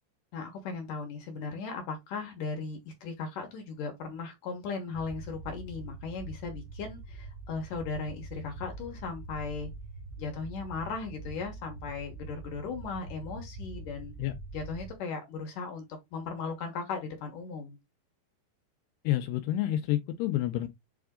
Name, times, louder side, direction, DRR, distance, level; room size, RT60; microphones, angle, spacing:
voice 1, 0.3-9.7 10.2-14.1 14.5-15.9 16.1-17.8, left 4 dB, 65° left, 2.2 m, -37 dB
sound 1, 4.9-14.9, right 2 dB, 90° right, 3.7 m, -44 dB
voice 2, 19.0-20.7, left 13 dB, 80° left, 2.5 m, -29 dB
7.7 x 3.5 x 3.6 m
omnidirectional pair, 5.1 m